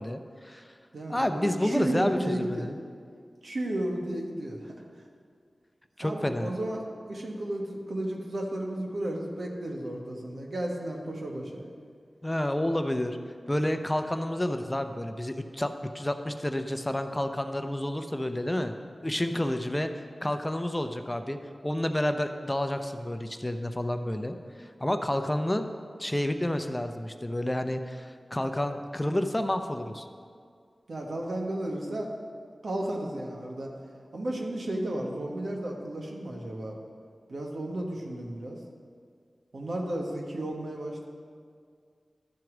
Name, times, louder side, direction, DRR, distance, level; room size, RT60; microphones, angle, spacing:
voice 1, 0.0-0.7 1.1-2.8 6.0-6.5 12.2-13.2 13.5-18.7 19.0-21.4 21.6-25.7 26.0-30.0, left 1 dB, 20° left, 7 dB, 0.6 m, -30 dB
voice 2, 0.9-2.7 3.4-4.7 6.0-11.7 30.9-32.1 32.6-33.7 34.1-36.8 37.3-38.6 39.5-41.1, right 1 dB, 75° right, 0 dB, 1.2 m, -33 dB
12.0 x 4.6 x 6.1 m, 2.1 s
cardioid pair, 40°, 0 cm